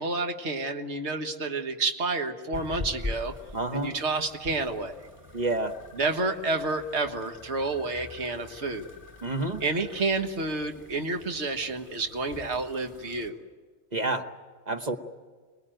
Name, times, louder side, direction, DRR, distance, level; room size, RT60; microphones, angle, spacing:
voice 1, 0.0-3.3 3.7-5.0 5.9-8.9 9.6-13.4, right 3 dB, 80° right, 5 dB, 1.8 m, -29 dB
sound 1, 2.5-13.3, left 2 dB, 15° right, 4.3 m, -43 dB
voice 2, 3.5-4.0 5.3-5.7 9.2-9.6 13.9-14.3 14.7-15.0, right 2 dB, 40° right, 5 dB, 1.3 m, -28 dB
27.0 x 20.0 x 9.1 m, 1.5 s
omnidirectional pair, 1.1 m